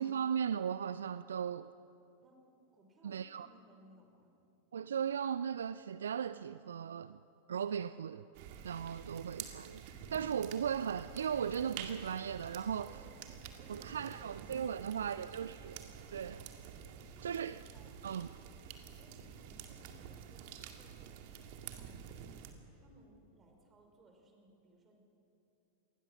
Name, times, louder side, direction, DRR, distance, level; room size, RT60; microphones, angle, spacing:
voice 1, 0.0-1.7 3.0-3.5 4.7-7.2 7.5-8.2 8.6-9.8 10.1-12.9 13.7-15.5 16.1-16.5 17.2-17.6 18.0-18.3, right 8 dB, 65° right, 0.4 m, -37 dB
voice 2, 2.7-4.4 12.8-14.3 14.6-15.5 17.1-18.4 18.8-22.3 22.7-25.0, right 1 dB, 20° right, 5.3 m, -63 dB
sound 1, 8.3-22.5, right 8 dB, 45° right, 2.1 m, -49 dB
27.0 x 20.5 x 6.4 m
figure-of-eight pair, 90°, 0 cm